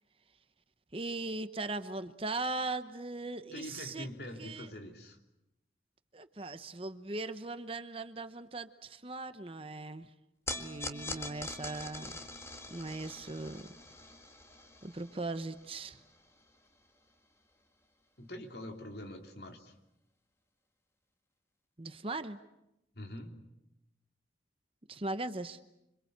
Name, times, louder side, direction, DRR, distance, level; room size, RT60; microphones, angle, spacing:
voice 1, 0.9-4.1 4.4-4.7 6.1-10.1 10.5-12.2 12.7-13.7 14.8-16.0 21.8-22.4 24.9-25.6, right 2 dB, 30° right, 10 dB, 0.9 m, -39 dB
voice 2, 3.5-5.2 18.2-19.7 23.0-23.4, left 1 dB, 60° left, 3 dB, 3.2 m, -44 dB
sound 1, 10.5-16.9, left 2 dB, 15° left, 1.8 m, -44 dB
27.0 x 26.0 x 8.1 m, 0.88 s
head